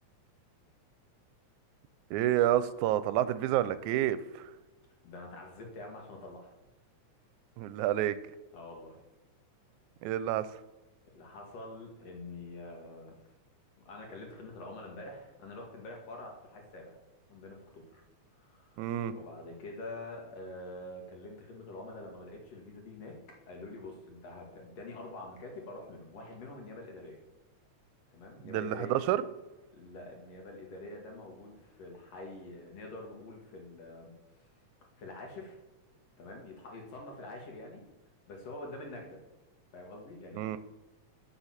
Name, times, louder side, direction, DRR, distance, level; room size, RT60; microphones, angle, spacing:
voice 1, 2.1-4.5 7.6-8.2 10.0-10.5 18.8-19.1 28.4-29.2 40.4-40.6, right 12 dB, 85° right, 14 dB, 2.0 m, -29 dB
voice 2, 5.0-6.5 8.5-9.0 11.1-13.2 13.8-17.0 17.3-18.0 18.3-23.2 23.5-27.2 28.1-29.0 29.7-34.5 35.0-35.6 36.2-37.9 38.3-39.2 39.7-40.5, left 2 dB, 60° left, 0 dB, 2.8 m, -46 dB
9.6 x 5.9 x 5.8 m, 1.1 s
omnidirectional pair, 3.4 m